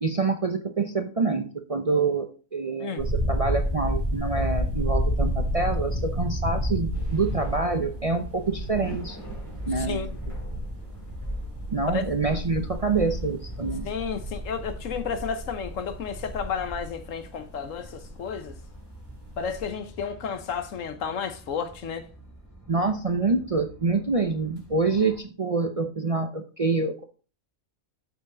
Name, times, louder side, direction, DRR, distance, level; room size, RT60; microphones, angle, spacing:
voice 1, 0.0-9.2 9.7-10.0 11.7-13.9 22.7-27.0, right 3 dB, 40° right, 0.5 m, -26 dB
sound 1, 3.0-18.7 19.1-19.6, equal, 20° right, 2.5 m, -30 dB
sound 2, 6.9-25.2, right 1 dB, 10° left, 2.9 m, -46 dB
voice 2, 9.8-10.2 11.9-12.0 13.8-18.6 19.4-22.1, left 6 dB, 70° left, 1.3 m, -32 dB
8.0 x 6.9 x 3.8 m
omnidirectional pair, 1.4 m